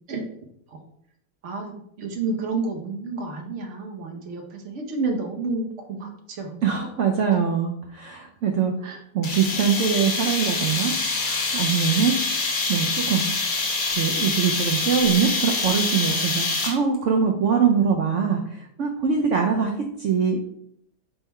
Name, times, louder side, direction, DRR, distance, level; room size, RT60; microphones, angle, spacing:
voice 1, 1.4-6.7 8.8-9.0, right 3 dB, 55° right, 2 dB, 0.9 m, -30 dB
voice 2, 6.6-8.7 9.1-12.2 12.7-13.7 14.0-19.7 20.0-20.4, right 6 dB, 80° right, 2 dB, 0.6 m, -23 dB
sound 1, 9.2-17.0, left 3 dB, 45° left, 0.9 m, -25 dB
3.6 x 3.4 x 4.1 m, 0.71 s
omnidirectional pair, 1.9 m